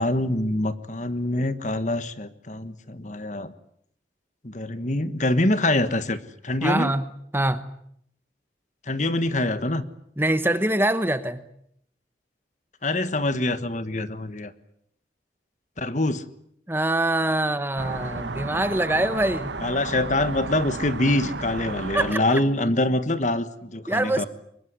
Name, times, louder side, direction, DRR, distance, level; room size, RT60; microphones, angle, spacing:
voice 1, 0.0-3.5 4.4-6.2 6.4-6.9 8.9-9.8 12.8-14.5 15.8-16.2 19.6-24.3, left 1 dB, 40° left, 12 dB, 1.4 m, -25 dB
voice 2, 6.6-7.6 10.2-11.4 16.7-19.6 21.9-22.4 23.9-24.2, right 1 dB, 10° right, 11 dB, 1.0 m, -24 dB
sound 1, 17.8-22.1, right 3 dB, 75° right, 1.6 m, -33 dB
24.5 x 21.0 x 9.7 m, 0.71 s
head